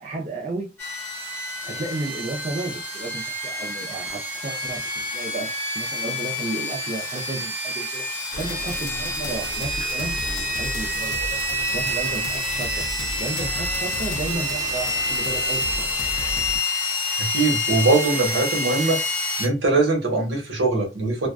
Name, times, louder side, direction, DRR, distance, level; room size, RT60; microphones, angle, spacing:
voice 1, 0.0-0.7 1.6-5.5 5.7-11.2 11.7-12.8 13.2-15.8, right 2 dB, 40° right, 0.5 m, -33 dB
sound 1, 0.8-19.5, left 1 dB, 10° left, 0.9 m, -28 dB
sound 2, 8.3-16.6, left 2 dB, 55° left, 0.4 m, -34 dB
voice 2, 17.2-19.0 19.4-21.3, right 3 dB, 75° right, 1.0 m, -21 dB
2.4 x 2.2 x 2.3 m
head